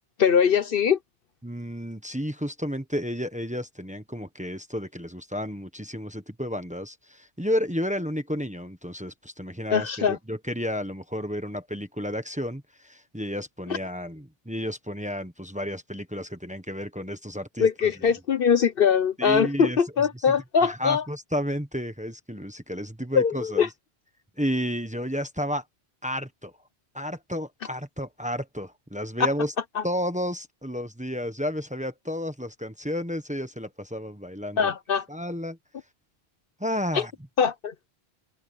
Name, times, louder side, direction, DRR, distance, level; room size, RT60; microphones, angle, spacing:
voice 1, 0.2-1.0 9.7-10.2 17.6-21.0 23.1-23.7 29.8-29.9 34.6-35.0 36.9-37.0 37.4-37.7, left 7 dB, 60° left, 1.0 m, -22 dB
voice 2, 1.4-17.9 19.2-23.7 24.4-25.6 26.0-26.5 26.9-29.5 29.8-34.7 35.1-35.6 36.6-37.1, equal, 5° right, 1.2 m, -32 dB
open air
omnidirectional pair, 1.1 m